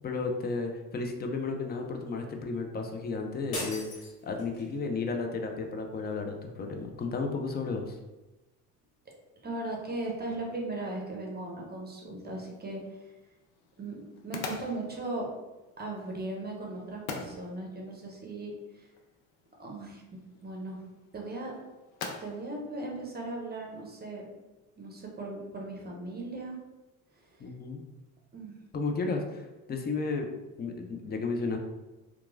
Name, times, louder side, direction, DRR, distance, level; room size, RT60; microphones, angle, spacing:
voice 1, 0.0-8.0 27.4-27.8 28.7-30.3 30.6-31.6, left 4 dB, 25° left, 3 dB, 0.4 m, -33 dB
sound 1, 3.5-4.8, left 1 dB, 65° left, 1.4 m, -39 dB
voice 2, 9.4-13.1 13.8-15.3 15.8-18.9 19.6-20.0 20.4-20.8 21.1-21.5 22.2-24.2 24.8-26.6 27.1-27.4 28.3-28.6, right 2 dB, 20° right, -1 dB, 0.7 m, -38 dB
sound 2, 12.2-23.9, left 4 dB, 85° left, 0.5 m, -46 dB
2.9 x 2.3 x 2.5 m, 1.1 s
hypercardioid pair, 75°, 43 cm